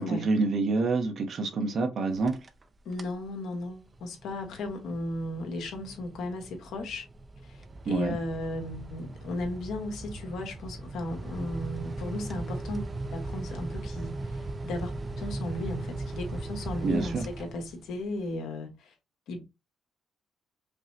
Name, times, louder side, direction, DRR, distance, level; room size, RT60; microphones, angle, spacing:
voice 1, 0.0-2.4 7.8-8.2 16.8-17.2, right 3 dB, 60° right, 0.9 m, -27 dB
sound 1, 2.1-2.6 2.9-3.3 3.7-18.0, right 2 dB, 30° right, 0.5 m, -38 dB
voice 2, 2.8-7.1 7.4-18.9 19.3-19.4, left 1 dB, 80° left, 1.2 m, -36 dB
5.3 x 2.1 x 2.8 m
cardioid pair, 90°, 0 cm